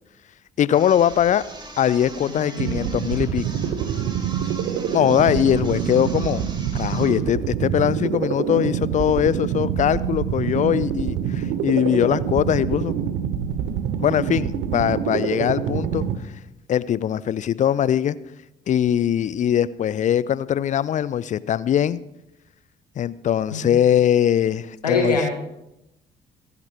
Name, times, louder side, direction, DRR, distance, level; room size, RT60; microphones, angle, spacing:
voice 1, 0.6-1.4 1.8-3.5 4.9-6.4 6.7-12.9 14.0-16.1 16.7-18.2 18.7-22.0 23.0-25.2, left 10 dB, 40° left, 20 dB, 0.5 m, -21 dB
sound 1, 0.7-7.2, right 2 dB, 25° right, 3.8 m, -40 dB
voice 2, 2.3-2.7 23.5-23.7 24.8-25.3, left 3 dB, 80° left, 3 dB, 1.7 m, -24 dB
sound 2, 2.6-16.2, right 8 dB, 60° right, 1.1 m, -26 dB
27.5 x 11.0 x 3.0 m, 0.88 s
figure-of-eight pair, 45°, 20 cm